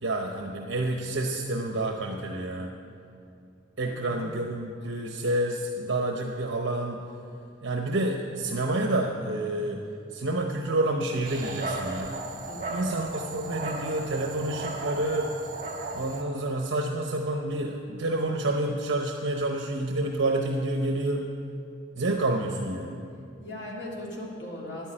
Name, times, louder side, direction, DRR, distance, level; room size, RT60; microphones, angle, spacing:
voice 1, 0.0-2.7 3.8-7.0 7.6-9.8 10.1-12.2 12.7-15.3 15.9-21.2 22.0-22.9, right 1 dB, 75° right, 2 dB, 0.8 m, -28 dB
Dog, 11.2-16.2, right 2 dB, 45° right, 1.7 m, -35 dB
voice 2, 12.5-12.8 23.4-24.9, left 1 dB, 65° left, -4 dB, 2.9 m, -38 dB
10.5 x 9.3 x 8.6 m, 2.5 s
head